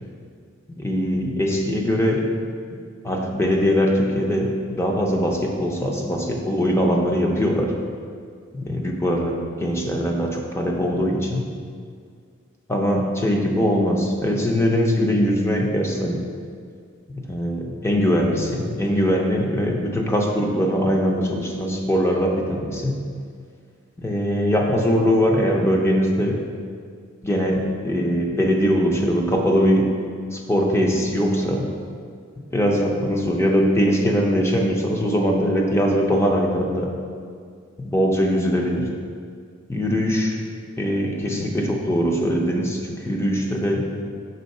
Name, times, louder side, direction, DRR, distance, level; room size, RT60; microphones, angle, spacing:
voice 1, 0.8-2.3 3.0-7.7 8.5-11.5 12.7-16.2 17.1-23.0 24.0-26.4 27.2-29.9 30.3-31.7 32.5-36.9 37.8-38.9 39.7-40.4 40.8-43.9, equal, 15° left, 0 dB, 0.6 m, -21 dB
5.5 x 3.5 x 5.4 m, 2.1 s
head